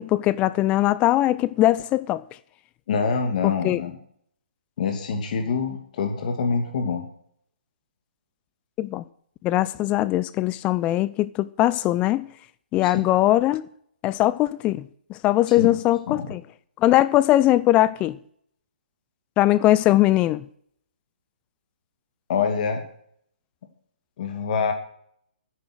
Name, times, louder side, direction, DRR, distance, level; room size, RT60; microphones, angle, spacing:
voice 1, 0.0-2.2 3.4-3.8 8.8-9.0 9.4-12.3 12.7-13.7 14.0-16.4 16.8-18.2 19.4-20.5, left 15 dB, 20° left, 0.5 m, -21 dB
voice 2, 2.9-3.9 4.8-7.0 12.8-12.9 15.5-15.7 16.1-16.3 22.3-22.8 24.2-24.7, left 5 dB, 50° left, 2.6 m, -25 dB
13.0 x 10.0 x 6.3 m
figure-of-eight pair, 135°, 6 cm